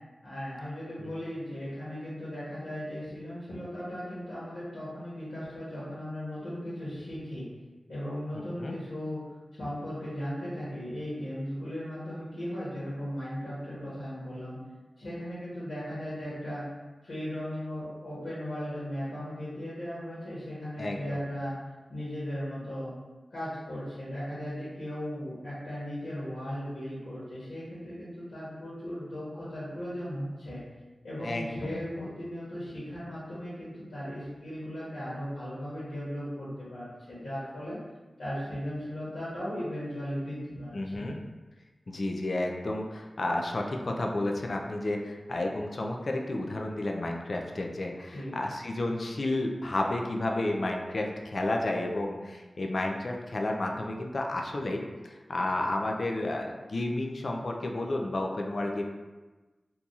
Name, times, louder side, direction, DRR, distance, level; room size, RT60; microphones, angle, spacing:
voice 1, 0.2-7.5 7.9-9.2 9.5-14.6 15.0-16.7 17.0-21.6 21.9-22.9 23.3-30.6 31.0-37.8 38.2-41.0 48.1-48.4, equal, 90° left, -10 dB, 1.2 m, -37 dB
voice 2, 8.3-8.8 20.8-21.2 31.2-32.1 40.7-41.2 41.9-58.8, left 2 dB, 60° left, 2 dB, 0.3 m, -31 dB
2.8 x 2.4 x 3.8 m, 1.2 s
wide cardioid pair, 85°, 0 cm